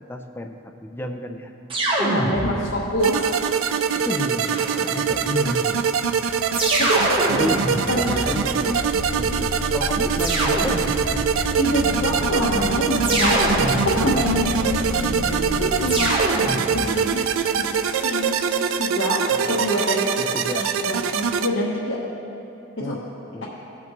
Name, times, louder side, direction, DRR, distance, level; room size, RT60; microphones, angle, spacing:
voice 1, 0.1-0.6 0.8-1.5 3.9-5.9 7.3-7.6 8.0-10.9 19.3-19.7 20.2-20.7 22.8-23.0 23.3-23.4, left 1 dB, 10° left, 4 dB, 0.4 m, -31 dB
sound 1, 1.7-2.9 4.4-5.3 6.5-8.9 10.2-11.3 13.0-14.4 15.9-17.1, right 1 dB, 25° right, 1.0 m, -25 dB
voice 2, 2.0-3.3 4.8-5.0 6.9-7.0 7.9-8.3 11.5-18.4 18.8-19.2 19.4-20.2 20.6-22.0 22.8-22.9, left 1 dB, 75° left, -5 dB, 1.1 m, -26 dB
sound 2, 3.0-21.5, right 7 dB, 85° right, 0.4 m, -23 dB
sound 3, 5.8-16.0, left 1 dB, 35° left, 1.1 m, -32 dB
16.0 x 5.9 x 3.0 m, 2.9 s
head